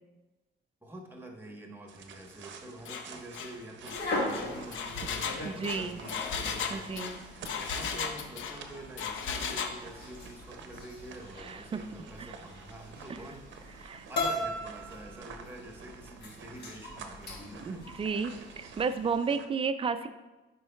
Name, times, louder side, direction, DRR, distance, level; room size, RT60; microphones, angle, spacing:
voice 1, 0.8-17.9, right 1 dB, 10° right, 0 dB, 1.1 m, -47 dB
sound 1, 1.9-19.5, right 6 dB, 70° right, 0.6 m, -50 dB
Engine, 2.9-3.1 3.3-3.5 3.9-8.6 9.0-9.8, left 6 dB, 75° left, 0.6 m, -35 dB
sound 2, 3.9-19.1, left 2 dB, 55° left, 1.4 m, -40 dB
voice 2, 5.4-6.0 6.7-7.2 11.4-11.8 12.2-12.3 13.8-14.0 17.7-20.1, right 5 dB, 30° right, 11 dB, 0.4 m, -32 dB
9.5 x 4.6 x 2.3 m, 1.1 s
cardioid pair, 90°, 20 cm